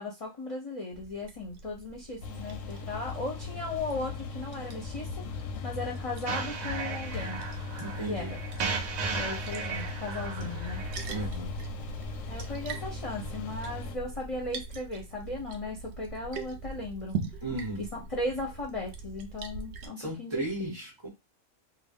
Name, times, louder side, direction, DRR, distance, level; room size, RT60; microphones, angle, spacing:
voice 1, 0.0-7.4 8.1-8.4 9.2-10.8 12.3-17.2 17.8-20.7, left 2 dB, 40° left, 0.5 m, -37 dB
Liquid, 0.9-19.9, right 4 dB, 65° right, 0.8 m, -42 dB
sound 1, 2.2-14.0, left 4 dB, 85° left, 1.0 m, -39 dB
sound 2, 6.2-11.3, right 5 dB, 80° right, 0.3 m, -36 dB
voice 2, 7.8-8.3 11.1-11.5 17.4-17.8 20.0-21.1, right 1 dB, 25° right, 0.8 m, -35 dB
2.4 x 2.0 x 3.5 m
omnidirectional pair, 1.3 m